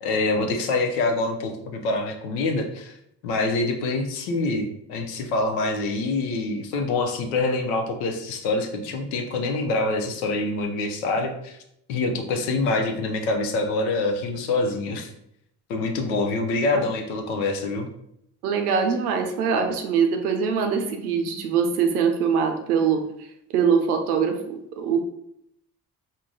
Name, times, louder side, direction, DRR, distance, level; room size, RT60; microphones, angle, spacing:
voice 1, 0.0-2.9 3.2-11.6 11.9-15.1 15.7-17.9, left 2 dB, 80° left, 5 dB, 0.7 m, -25 dB
voice 2, 18.4-23.0 23.5-25.0, right 6 dB, 90° right, 5 dB, 0.5 m, -23 dB
4.6 x 2.2 x 3.8 m, 0.77 s
hypercardioid pair, 40°, 43 cm